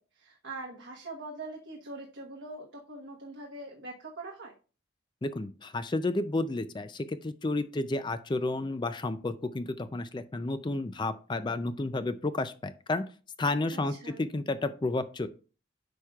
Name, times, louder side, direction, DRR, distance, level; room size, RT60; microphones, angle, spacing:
voice 1, 0.1-4.5 13.7-14.3, right 2 dB, 70° right, 0 dB, 1.2 m, -43 dB
voice 2, 5.2-13.1 13.4-15.3, left 2 dB, 25° left, 11 dB, 0.4 m, -31 dB
9.9 x 6.2 x 2.4 m, 0.36 s
head